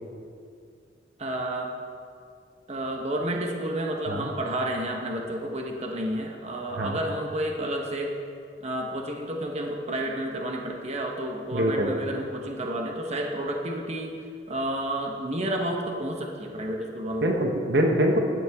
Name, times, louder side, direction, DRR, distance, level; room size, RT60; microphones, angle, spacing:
voice 1, 1.2-1.7 2.7-8.1 8.6-14.1 14.5-17.3, right 1 dB, 40° right, 1 dB, 1.2 m, -30 dB
voice 2, 11.5-11.9 17.2-18.2, equal, 65° right, 2 dB, 1.1 m, -24 dB
15.5 x 9.6 x 3.6 m, 2.3 s
head